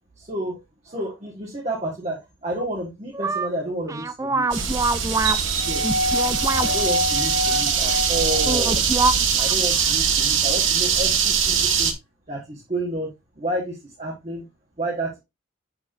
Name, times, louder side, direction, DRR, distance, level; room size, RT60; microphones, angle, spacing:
voice 1, 0.2-4.8 5.6-6.0 6.6-8.8 9.4-11.9 12.3-13.1 13.4-14.4 14.8-15.2, right 1 dB, 30° right, -2 dB, 1.6 m, -30 dB
sound 1, 3.1-3.5 3.9-5.4 5.8-6.7 8.5-9.6 9.9-10.0, right 3 dB, 15° right, 0.4 m, -24 dB
sound 2, 4.5-11.9, right 5 dB, 70° right, 1.2 m, -21 dB
7.2 x 6.4 x 2.6 m, 0.22 s
head